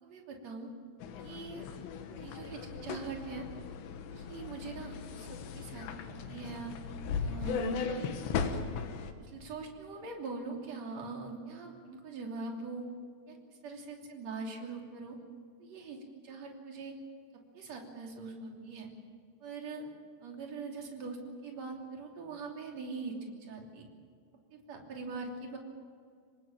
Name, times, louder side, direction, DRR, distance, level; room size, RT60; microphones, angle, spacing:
voice 1, 0.0-0.7 1.2-1.7 2.1-3.5 4.1-5.9 6.2-6.7 7.2-8.1 8.4-8.6 9.2-12.9 13.3-15.2 15.6-17.0 17.5-18.9 19.4-19.9 20.2-23.8 24.5-25.6, right 4 dB, 45° right, 1 dB, 3.9 m, -42 dB
sound 1, 1.0-9.1, left 6 dB, 85° left, 3.6 m, -38 dB
25.5 x 19.5 x 7.5 m, 2.1 s
omnidirectional pair, 4.8 m